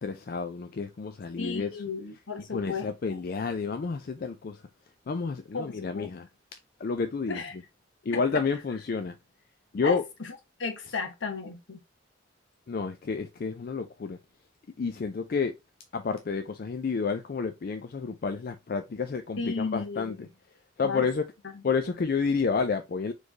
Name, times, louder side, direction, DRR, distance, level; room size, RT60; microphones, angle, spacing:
voice 1, 0.0-1.8 2.5-4.6 5.1-6.3 6.8-7.4 8.0-9.2 9.7-10.0 12.7-14.2 14.8-15.5 15.9-20.2 20.8-21.3 21.6-23.1, left 5 dB, 50° left, 0.4 m, -30 dB
voice 2, 1.4-2.9 5.5-6.1 7.3-7.5 8.1-8.2 9.8-11.8 19.4-20.3 20.8-21.1 21.5-21.6, left 4 dB, 75° left, 1.1 m, -34 dB
4.3 x 3.2 x 2.8 m
head